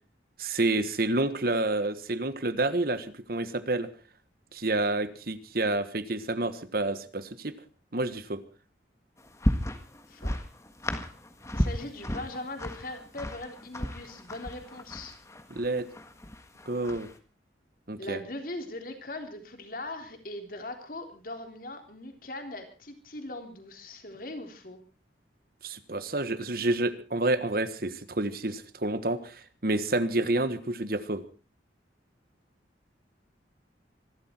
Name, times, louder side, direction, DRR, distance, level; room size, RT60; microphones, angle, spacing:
voice 1, 0.4-3.9 4.5-7.5 7.9-8.4 15.5-15.9 16.7-17.1 17.9-18.2 25.6-31.2, right 2 dB, 55° right, 13 dB, 1.5 m, -29 dB
sound 1, 9.2-17.2, equal, 15° left, 1.6 m, -34 dB
voice 2, 11.5-15.2 18.0-24.8, left 2 dB, 50° left, 5 dB, 3.5 m, -40 dB
25.5 x 12.5 x 4.4 m, 0.35 s
head